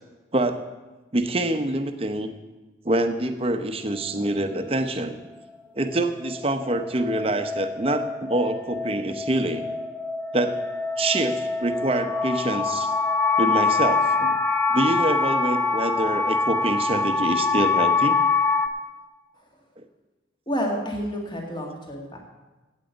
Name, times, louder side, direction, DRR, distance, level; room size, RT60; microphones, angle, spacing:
voice 1, 0.3-0.6 1.1-2.3 2.8-5.2 5.8-9.7 10.3-10.6 11.0-12.9 13.4-14.4 14.7-18.2, right 1 dB, 30° right, 8 dB, 0.8 m, -25 dB
sound 1, 5.9-18.7, left 4 dB, 10° left, 0.7 m, -25 dB
voice 2, 20.5-22.2, equal, 25° left, 1 dB, 1.8 m, -29 dB
9.1 x 8.3 x 8.9 m, 1.2 s
head